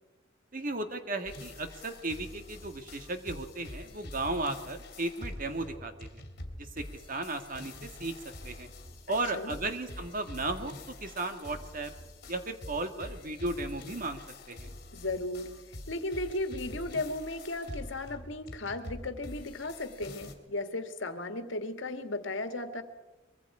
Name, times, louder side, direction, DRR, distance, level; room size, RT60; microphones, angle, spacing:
voice 1, 0.5-6.2 6.6-8.1 8.4-8.7 9.1-11.9 12.3-14.2 14.5-14.7, right 2 dB, 45° right, 7 dB, 1.8 m, -35 dB
sound 1, 1.2-20.3, left 1 dB, 55° left, 2.8 m, -46 dB
voice 2, 9.1-9.6 14.9-15.5 15.9-22.8, left 2 dB, 75° left, 8 dB, 1.8 m, -35 dB
24.0 x 23.0 x 4.9 m, 1.1 s
head